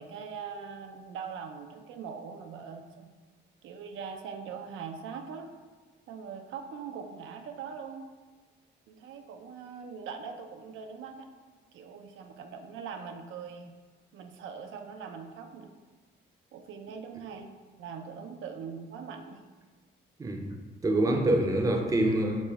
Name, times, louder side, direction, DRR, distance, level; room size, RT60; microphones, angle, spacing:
voice 1, 0.0-3.1 3.6-5.5 6.1-8.1 8.9-11.3 11.7-13.7 14.1-15.7 16.5-17.5 17.8-19.4, right 6 dB, 80° right, 5 dB, 0.4 m, -42 dB
voice 2, 20.2-20.5 20.8-22.4, right 1 dB, 15° right, 3 dB, 0.5 m, -25 dB
5.0 x 2.1 x 3.4 m, 1.4 s
cardioid pair, 90°, 20 cm